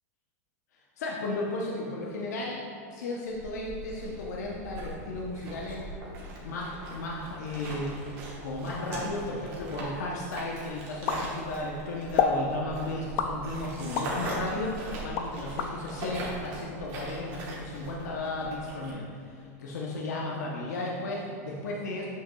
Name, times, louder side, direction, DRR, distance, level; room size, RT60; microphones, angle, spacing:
voice 1, 1.0-2.6 2.9-5.8 6.4-8.2 8.4-22.1, left 2 dB, 85° left, -2 dB, 0.8 m, -34 dB
sound 1, 3.3-18.9, right 1 dB, 35° right, 1.2 m, -40 dB
sound 2, 11.1-11.7 12.2-12.4 13.2-14.2 14.6-15.7, left 6 dB, 30° left, 0.3 m, -28 dB
7.5 x 6.0 x 2.3 m, 2.3 s
supercardioid pair, 170°, 9 cm